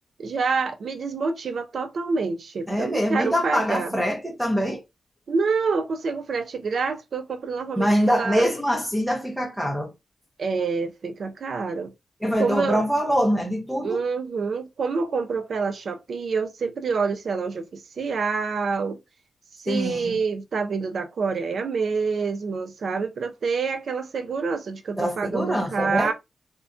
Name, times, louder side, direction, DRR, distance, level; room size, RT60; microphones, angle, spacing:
voice 1, 0.2-3.9 5.3-8.5 10.4-11.9 12.4-12.9 13.8-19.0 19.6-26.1, right 4 dB, 65° right, 0.4 m, -27 dB
voice 2, 2.7-4.8 7.8-9.9 12.2-14.0 19.7-20.2 25.0-26.1, equal, 5° right, 0.6 m, -24 dB
2.5 x 2.1 x 2.4 m
cardioid pair, 90°, 0 cm